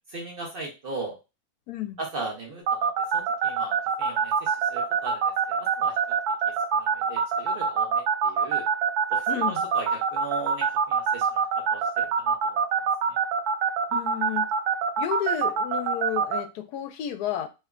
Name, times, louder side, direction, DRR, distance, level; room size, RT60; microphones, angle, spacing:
voice 1, 0.1-1.2 2.0-6.0 6.7-8.7 9.1-11.4 11.7-12.6 13.1-13.2, right 3 dB, 50° right, 0.8 m, -38 dB
voice 2, 1.7-2.0 9.3-9.7 13.9-14.5 15.0-17.5, left 11 dB, 85° left, 1.1 m, -32 dB
sound 1, 2.7-16.4, right 6 dB, 80° right, 1.1 m, -23 dB
3.0 x 2.2 x 3.6 m
omnidirectional pair, 1.6 m